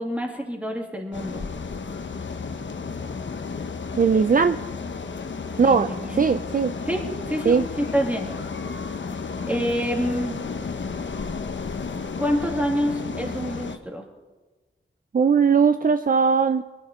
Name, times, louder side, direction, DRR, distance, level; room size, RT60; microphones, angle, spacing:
voice 1, 0.0-1.5 5.6-6.3 6.9-8.3 9.5-10.5 12.2-14.1, equal, 5° right, 0 dB, 2.7 m, -27 dB
sound 1, 1.1-13.8, left 5 dB, 65° left, 1.0 m, -32 dB
voice 2, 4.0-4.6 5.6-6.7 7.5-7.6 15.1-16.6, right 5 dB, 45° right, 10 dB, 0.5 m, -19 dB
22.5 x 12.5 x 4.4 m, 1.2 s
wide cardioid pair, 90°, 20 cm